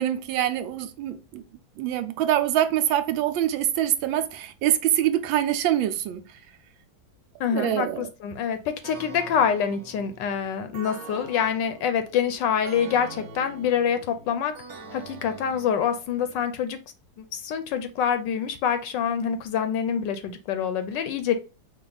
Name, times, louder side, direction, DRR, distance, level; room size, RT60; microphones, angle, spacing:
voice 1, 0.0-1.4 1.8-6.2 7.5-8.1, right 11 dB, 75° right, 1.4 m, -24 dB
voice 2, 7.4-14.5 14.9-16.8 17.2-21.3, left 7 dB, 75° left, 1.1 m, -26 dB
sound 1, 8.8-16.5, right 4 dB, 60° right, 1.0 m, -44 dB
5.1 x 2.4 x 3.8 m
omnidirectional pair, 2.2 m